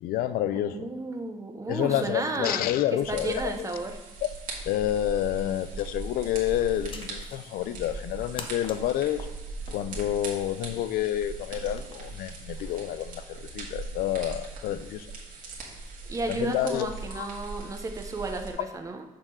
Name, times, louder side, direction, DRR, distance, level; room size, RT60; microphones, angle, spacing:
voice 1, 0.0-0.9 1.7-3.6 4.2-4.3 4.7-9.3 9.7-15.1 16.3-16.9 17.1-17.3, left 12 dB, 90° left, 0.4 m, -29 dB
voice 2, 0.5-4.0 16.1-19.0, right 2 dB, 20° right, 0.7 m, -33 dB
sound 1, 3.0-18.5, right 3 dB, 70° right, 1.7 m, -40 dB
Playing With Bionics, 5.4-13.0, left 4 dB, 35° left, 0.6 m, -49 dB
6.6 x 3.7 x 6.1 m
cardioid pair, 150°, 15 cm